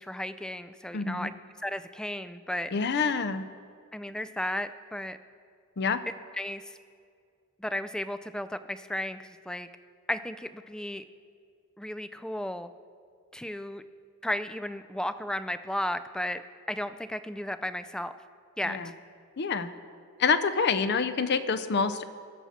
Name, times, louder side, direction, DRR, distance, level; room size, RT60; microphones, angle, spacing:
voice 1, 0.0-1.3 1.6-2.7 3.9-5.2 6.3-6.8 7.6-9.7 10.1-11.0 11.8-12.7 13.3-13.8 14.2-16.4 16.7-18.1 18.6-18.9, left 1 dB, 5° left, 12 dB, 0.3 m, -34 dB
voice 2, 0.9-1.3 2.7-3.4 5.8-6.0 18.7-18.9 19.4-19.7 20.2-22.0, left 5 dB, 50° left, 12 dB, 0.5 m, -27 dB
21.0 x 7.2 x 4.2 m, 2.3 s
head